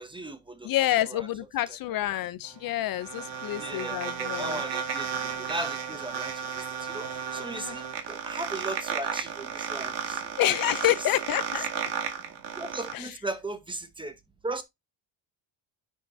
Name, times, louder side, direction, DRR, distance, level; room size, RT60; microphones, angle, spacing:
voice 1, 0.0-0.7 1.1-1.3 3.5-10.6 10.8-10.9 12.6-14.1 14.4-14.6, right 2 dB, 10° right, 0.8 m, -37 dB
voice 2, 0.6-4.6 7.5-7.8 10.4-11.7 12.9-13.1, left 13 dB, 50° left, 0.6 m, -28 dB
sound 1, 2.5-12.9, right 7 dB, 55° right, 2.0 m, -34 dB
10.0 x 5.5 x 2.7 m
cardioid pair, 160°, 47 cm